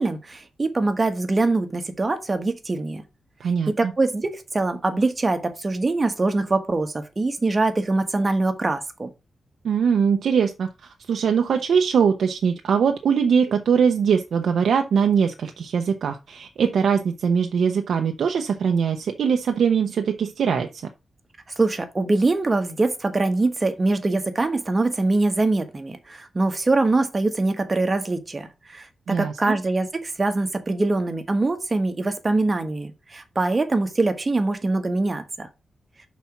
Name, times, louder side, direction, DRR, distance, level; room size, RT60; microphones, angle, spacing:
voice 1, 0.0-3.0 3.7-9.1 21.6-35.5, right 2 dB, 30° right, 1.2 m, -23 dB
voice 2, 3.4-3.9 9.6-20.9 29.1-29.6, right 6 dB, 85° right, 0.7 m, -22 dB
5.7 x 4.2 x 5.8 m
wide cardioid pair, 105°, 0 cm